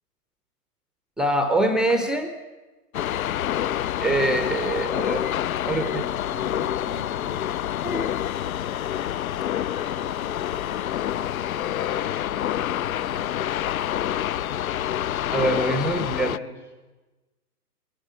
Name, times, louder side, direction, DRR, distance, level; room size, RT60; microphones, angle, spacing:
voice 1, 1.2-2.3 4.0-5.2 5.6-6.0 7.8-8.1 15.3-16.3, right 1 dB, ahead, 7 dB, 0.7 m, -24 dB
sound 1, 2.9-16.4, left 11 dB, 60° left, 0.7 m, -27 dB
voice 2, 5.6-7.6 15.9-16.7, left 3 dB, 85° left, 1 dB, 7.4 m, -45 dB
23.5 x 19.5 x 8.2 m, 1.2 s
hypercardioid pair, 135°, 48 cm